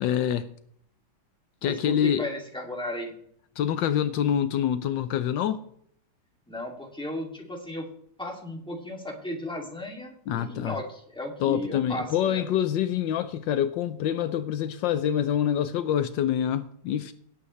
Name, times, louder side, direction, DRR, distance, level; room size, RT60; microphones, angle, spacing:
voice 1, 0.0-0.5 1.6-2.2 3.6-5.6 10.3-10.8 11.4-17.1, left 10 dB, 80° left, 1.3 m, -26 dB
voice 2, 1.6-3.1 6.5-7.8 8.2-12.4, left 1 dB, ahead, 2.4 m, -35 dB
18.5 x 8.4 x 3.2 m
omnidirectional pair, 2.1 m